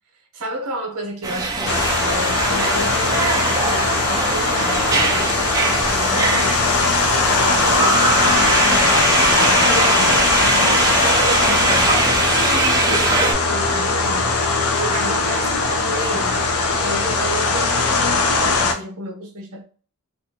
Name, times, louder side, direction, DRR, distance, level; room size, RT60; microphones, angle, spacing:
voice 1, 0.3-7.0 7.3-12.3 12.8-14.3 14.7-16.4 16.8-19.6, right 1 dB, 85° right, 0.8 m, -31 dB
sound 1, 1.2-13.3, right 3 dB, 15° right, 0.4 m, -21 dB
sound 2, 1.7-18.7, left 3 dB, 80° left, 0.6 m, -19 dB
2.5 x 2.3 x 2.8 m
head